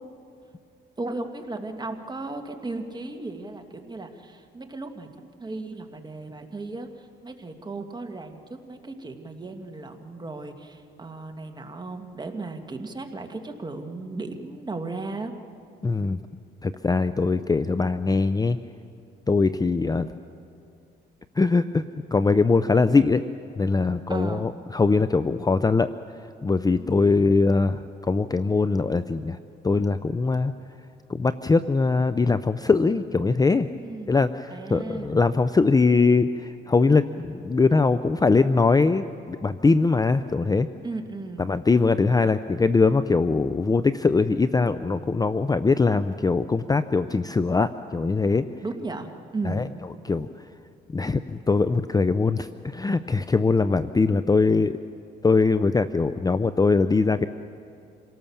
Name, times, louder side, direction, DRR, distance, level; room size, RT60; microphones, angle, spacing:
voice 1, 1.0-15.3 24.1-24.5 26.8-27.1 33.8-34.2 34.5-35.2 40.8-41.5 48.6-49.8, right 3 dB, 20° right, 5 dB, 2.0 m, -35 dB
voice 2, 15.8-16.2 16.6-18.6 19.3-20.1 21.4-21.8 22.1-23.2 23.6-25.9 26.4-29.4 29.6-30.5 31.1-33.7 34.1-40.7 41.4-48.5 49.5-49.7 50.0-50.3 50.9-54.8 55.2-57.3, left 4 dB, 20° left, 12 dB, 0.5 m, -22 dB
27.0 x 18.0 x 7.2 m, 2.5 s
cardioid pair, 90°, 20 cm